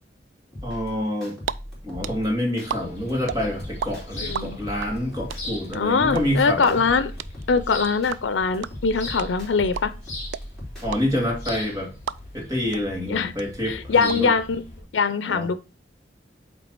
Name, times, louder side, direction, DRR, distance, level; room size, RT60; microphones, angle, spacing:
sound 1, 0.5-2.7 3.1-5.7 6.0-8.1 8.5-11.1, equal, ahead, 3.2 m, -38 dB
voice 1, 0.6-1.4 1.8-6.8 10.8-11.9 12.3-14.3 15.2-15.5, left 1 dB, 20° right, 0 dB, 2.1 m, -27 dB
sound 2, 1.1-1.5 1.8-3.9 4.1-12.5 12.7-12.8 13.1-14.1, right 8 dB, 80° right, 0.3 m, -32 dB
sound 3, 2.6-14.8, left 1 dB, 40° left, 3.8 m, -40 dB
voice 2, 4.2-4.6 5.7-7.1 7.5-9.9 13.1-13.3 13.7-14.6 14.9-15.6, left 5 dB, 85° left, 13 dB, 0.5 m, -22 dB
8.3 x 3.3 x 4.5 m, 0.32 s
head